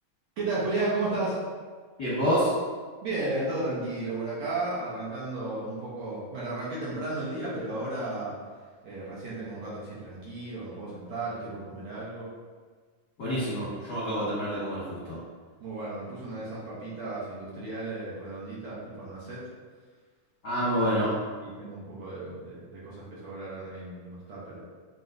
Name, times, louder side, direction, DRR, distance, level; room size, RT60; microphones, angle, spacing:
voice 1, 0.4-1.4 3.0-8.4 8.8-12.3 15.6-19.4 21.0-24.6, right 2 dB, 65° right, -8 dB, 1.8 m, -34 dB
voice 2, 2.0-2.5 13.2-15.2 20.4-21.1, equal, 60° left, -11 dB, 1.0 m, -27 dB
7.7 x 2.8 x 2.5 m, 1.5 s
omnidirectional pair, 3.7 m